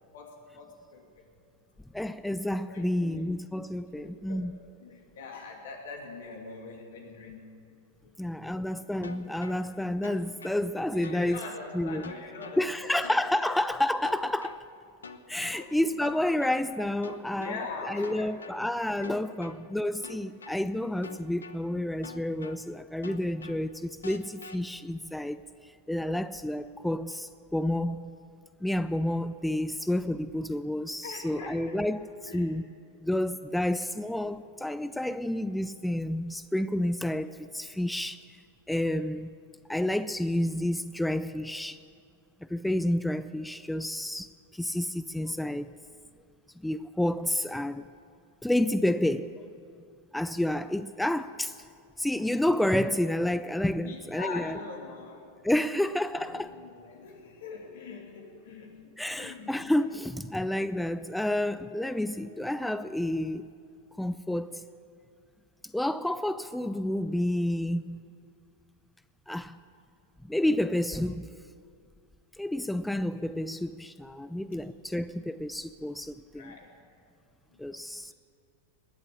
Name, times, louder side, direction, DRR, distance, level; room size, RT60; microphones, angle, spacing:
voice 1, 0.1-1.3 2.7-3.2 4.0-4.5 4.8-7.5 8.0-8.4 10.9-13.1 15.4-15.7 17.4-18.3 19.0-19.2 31.0-31.8 32.2-32.5 53.8-55.3 56.1-59.5 74.2-74.4 76.3-76.8 77.5-77.9, left 4 dB, 70° left, 2.7 m, -43 dB
voice 2, 1.9-4.6 8.2-11.4 11.7-12.1 12.6-14.6 15.3-17.5 17.8-28.1 28.6-32.0 32.3-32.6 33.0-38.4 38.7-39.3 39.7-41.8 42.5-45.7 46.6-47.9 48.4-49.5 50.1-51.6 52.0-54.6 55.4-56.5 59.0-63.5 64.0-64.6 65.7-68.0 69.3-69.6 70.3-71.3 72.4-76.6 77.6-78.1, left 1 dB, 5° left, 0.4 m, -30 dB
sound 1, 9.0-9.6 10.0-10.6 11.0-11.6 12.0-12.6 13.0-13.6 14.0-14.6 15.0-15.6 16.0-16.6 17.0-17.6 18.0-18.6 19.0-19.6 20.0-20.6 21.0-21.6 22.0-22.6 23.0-23.6 24.0-24.6, left 4 dB, 85° left, 0.8 m, -44 dB
20.0 x 8.1 x 8.6 m
hypercardioid pair, 100°, 0 cm